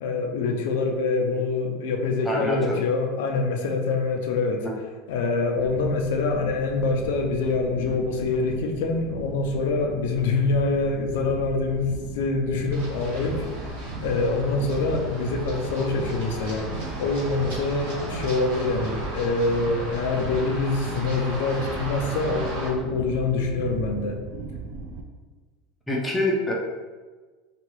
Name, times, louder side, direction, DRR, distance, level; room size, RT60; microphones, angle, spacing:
voice 1, 0.0-4.7 5.1-13.8 14.0-16.7 17.0-24.2, left 3 dB, 80° left, 3 dB, 0.4 m, -25 dB
voice 2, 2.2-2.8 4.6-4.7 25.9-26.5, left 1 dB, 5° left, -3 dB, 0.4 m, -25 dB
sound 1, 5.5-25.0, right 3 dB, 70° right, 0.4 m, -37 dB
Run, 12.7-22.7, right 1 dB, 90° right, 1.4 m, -36 dB
2.7 x 2.3 x 3.0 m, 1.3 s
supercardioid pair, 155°, 0 cm